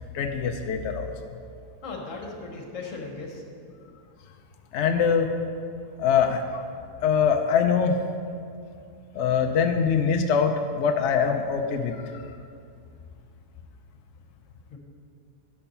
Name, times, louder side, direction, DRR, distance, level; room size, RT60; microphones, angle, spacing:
voice 1, 0.1-1.1 4.7-5.3 6.0-6.6 7.0-8.0 9.1-12.2, left 6 dB, 70° left, 5 dB, 0.6 m, -23 dB
voice 2, 1.8-3.4 14.7-14.8, left 3 dB, 50° left, 1 dB, 1.6 m, -37 dB
11.0 x 6.8 x 5.5 m, 2.4 s
omnidirectional pair, 1.8 m